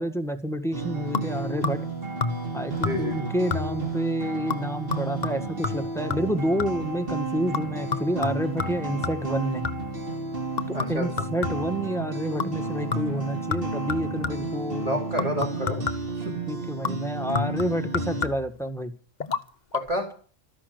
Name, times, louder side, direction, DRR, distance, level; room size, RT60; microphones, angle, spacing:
voice 1, 0.0-1.8 2.5-9.6 10.7-15.0 16.5-18.9, equal, ahead, 6 dB, 1.6 m, -29 dB
sound 1, 0.7-18.3, right 3 dB, 45° right, 2.9 m, -32 dB
sound 2, 1.1-1.9 2.2-2.6 2.8-3.2 3.5-3.9 4.5-6.9 7.5-10.0 10.6-11.8 12.4-12.6 12.9-14.6 15.2-16.2 16.8-18.6 19.2-19.4 19.7-19.8, left 5 dB, 40° left, 1.0 m, -31 dB
voice 2, 2.8-3.4 10.7-11.3 14.8-15.8 16.2-16.4 19.7-20.1, equal, 30° right, 2 dB, 3.5 m, -29 dB
13.5 x 11.5 x 8.0 m, 0.42 s
omnidirectional pair, 1.3 m